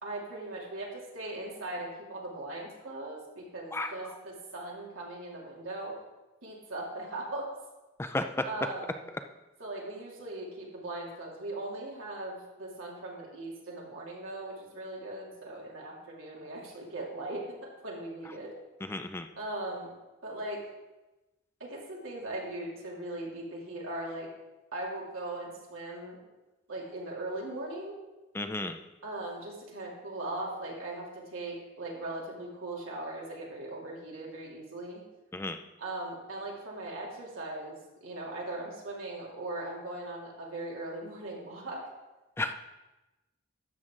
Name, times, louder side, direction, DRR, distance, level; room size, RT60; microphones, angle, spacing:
voice 1, 0.0-6.0 6.4-7.5 8.4-9.0 9.6-17.4 17.8-18.5 19.4-19.9 20.2-20.6 21.6-24.3 24.7-26.2 26.7-27.9 29.0-35.0 35.8-37.8 38.0-41.9, right 2 dB, 80° right, -3 dB, 2.8 m, -39 dB
voice 2, 18.8-19.3 28.3-28.8 35.3-35.6 42.4-42.6, left 2 dB, 10° left, 8 dB, 0.4 m, -33 dB
12.5 x 7.6 x 3.8 m, 1.1 s
head